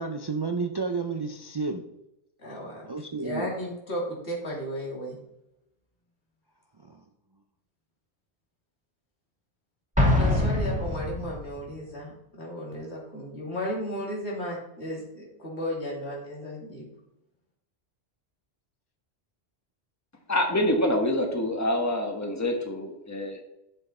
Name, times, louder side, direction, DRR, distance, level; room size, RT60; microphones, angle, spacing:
voice 1, 0.0-1.8 2.9-3.5 6.8-7.0, right 4 dB, 35° right, 4 dB, 0.4 m, -31 dB
voice 2, 2.4-5.2 10.2-16.9, equal, 85° left, -3 dB, 2.9 m, -34 dB
Explosion, 10.0-11.6, left 1 dB, 5° right, 1.5 m, -24 dB
voice 3, 20.3-23.4, left 1 dB, 15° left, 4 dB, 1.2 m, -26 dB
8.8 x 7.0 x 4.2 m, 0.86 s
omnidirectional pair, 1.1 m